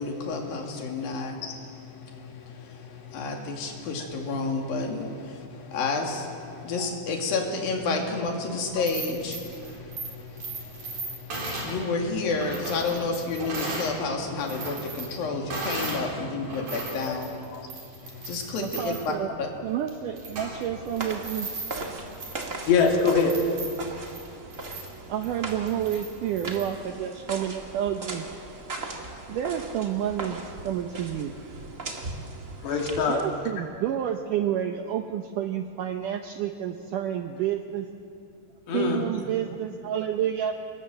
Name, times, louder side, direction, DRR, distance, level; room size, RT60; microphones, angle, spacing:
voice 1, 0.0-17.4 18.0-19.5, left 3 dB, 60° left, 2 dB, 4.1 m, -31 dB
sound 1, 8.7-14.0 14.3-16.1 16.4-26.7, right 2 dB, 50° right, 5.8 m, -37 dB
voice 2, 18.6-19.3 19.6-21.5 25.1-28.3 29.3-31.3 33.1-37.9 38.7-40.5, right 10 dB, 80° right, 6 dB, 1.9 m, -29 dB
sound 2, 20.1-33.4, right 2 dB, 35° right, 1.3 m, -39 dB
voice 3, 22.7-23.4 32.6-33.2 38.7-39.0, left 5 dB, 85° left, 1 dB, 4.7 m, -23 dB
26.5 x 21.0 x 7.7 m, 2.6 s
omnidirectional pair, 4.7 m